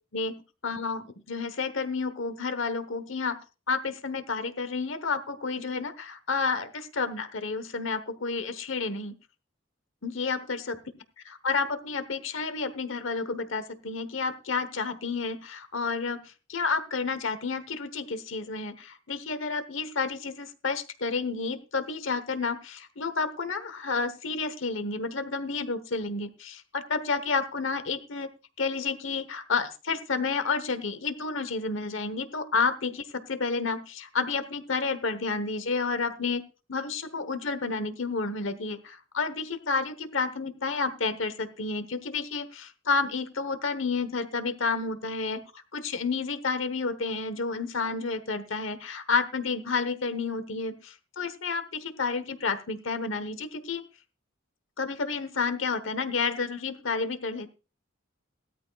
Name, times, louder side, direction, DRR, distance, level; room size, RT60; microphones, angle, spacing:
voice 1, 0.1-3.4 3.7-9.2 10.0-10.8 11.2-16.2 16.5-28.3 28.6-36.4 36.7-53.8 54.8-57.5, left 4 dB, 70° left, 12 dB, 1.1 m, -30 dB
17.0 x 13.0 x 2.3 m, 0.31 s
head